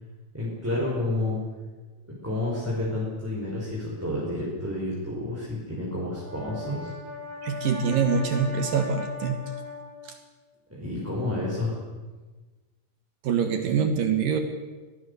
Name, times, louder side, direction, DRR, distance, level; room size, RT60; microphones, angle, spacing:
voice 1, 0.3-1.4 2.2-6.9 10.7-11.8, left 2 dB, 5° right, -6 dB, 4.7 m, -30 dB
Brass instrument, 6.0-10.2, left 3 dB, 30° right, 3.4 m, -38 dB
voice 2, 7.4-9.4 13.2-14.4, right 6 dB, 60° right, 7 dB, 2.5 m, -24 dB
23.0 x 18.0 x 6.9 m, 1.3 s
omnidirectional pair, 5.6 m